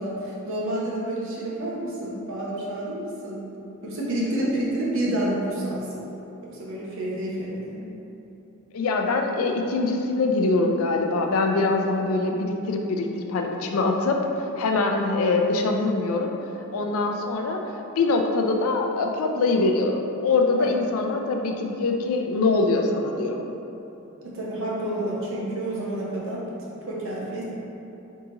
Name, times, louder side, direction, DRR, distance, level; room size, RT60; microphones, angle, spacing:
voice 1, 0.0-3.5 3.8-6.1 6.4-7.9 20.6-20.7 24.2-26.5 26.9-27.4, right 1 dB, 60° right, -5 dB, 0.8 m, -29 dB
voice 2, 8.7-14.3 14.6-16.3 16.7-17.6 18.0-23.4, left 3 dB, 70° left, 3 dB, 0.4 m, -23 dB
3.7 x 2.9 x 3.8 m, 2.9 s
head